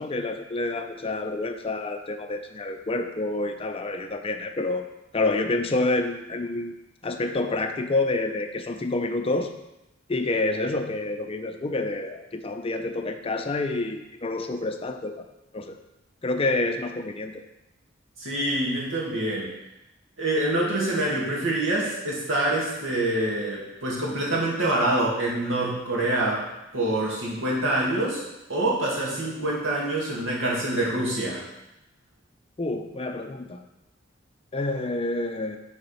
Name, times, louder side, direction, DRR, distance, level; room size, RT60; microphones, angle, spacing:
voice 1, 0.0-4.8 5.1-6.8 7.0-9.5 10.1-15.3 15.5-15.8 16.2-17.4 32.6-33.6 34.5-35.6, left 2 dB, 30° left, 6 dB, 0.5 m, -28 dB
voice 2, 18.2-19.5 20.2-26.5 26.7-28.2 28.5-31.5, right 1 dB, 80° right, -4 dB, 2.2 m, -26 dB
6.9 x 4.1 x 5.6 m, 0.93 s
head